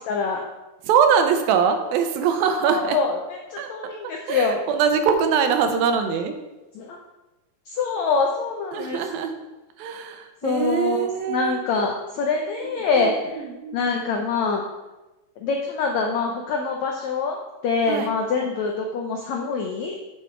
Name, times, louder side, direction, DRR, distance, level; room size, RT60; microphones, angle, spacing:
voice 1, 0.1-0.4 2.5-4.6 6.7-7.0 7.7-9.0 10.4-13.4 13.7-14.6 15.4-20.0, left 4 dB, 90° left, 1 dB, 1.6 m, -25 dB
voice 2, 0.8-3.0 3.6-6.3 8.7-9.4 9.8-11.6 12.9-13.9 17.9-18.1, right 7 dB, 85° right, 6 dB, 2.5 m, -23 dB
8.5 x 6.5 x 4.4 m, 1.1 s
omnidirectional pair, 4.2 m